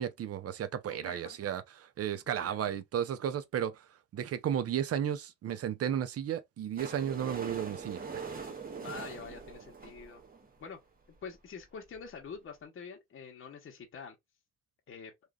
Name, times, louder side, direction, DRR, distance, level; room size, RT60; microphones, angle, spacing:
voice 1, 0.0-3.8 4.1-8.0, right 9 dB, 50° right, 0.6 m, -34 dB
voice 2, 0.9-1.4 2.3-2.8 8.7-10.2 10.6-10.8 11.2-14.1 14.9-15.1, left 6 dB, 45° left, 0.9 m, -46 dB
sound 1, 6.8-10.6 11.3-11.4 11.6-11.7 11.9-12.0 12.3-12.4, right 5 dB, 30° right, 0.9 m, -42 dB
3.0 x 2.3 x 2.3 m
cardioid pair, 90°, 30 cm